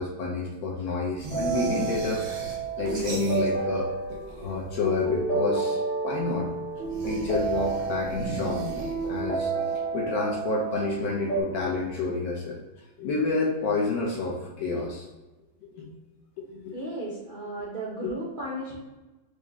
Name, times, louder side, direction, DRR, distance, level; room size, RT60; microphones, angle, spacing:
voice 1, 0.0-2.4 2.8-3.9 4.4-6.5 7.0-8.6 9.1-9.5 9.9-12.6 13.0-15.1 15.6-15.9 16.4-16.8 18.0-18.1, left 3 dB, 65° left, -2 dB, 0.9 m, -29 dB
sound 1, 1.2-3.8 4.0-4.9 6.8-9.4, right 2 dB, 90° right, 1.6 m, -36 dB
sound 2, 1.3-11.4, right 3 dB, 30° left, 0.8 m, -30 dB
voice 2, 16.7-18.8, right 1 dB, 70° right, -6 dB, 0.4 m, -35 dB
4.7 x 2.1 x 3.4 m, 1.1 s
omnidirectional pair, 2.0 m